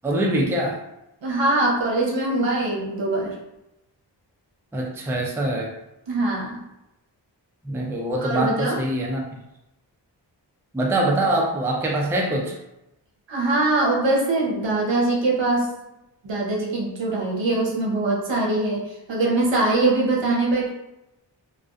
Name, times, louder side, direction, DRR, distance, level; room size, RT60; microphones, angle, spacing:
voice 1, 0.0-0.8 4.7-5.7 7.7-9.3 10.7-12.6, right 1 dB, 5° right, -1 dB, 0.3 m, -24 dB
voice 2, 1.2-3.4 6.1-6.6 8.2-8.8 13.3-15.7 16.2-20.7, right 2 dB, 75° right, -3 dB, 0.7 m, -22 dB
2.4 x 2.2 x 2.3 m, 0.90 s
wide cardioid pair, 80°, 44 cm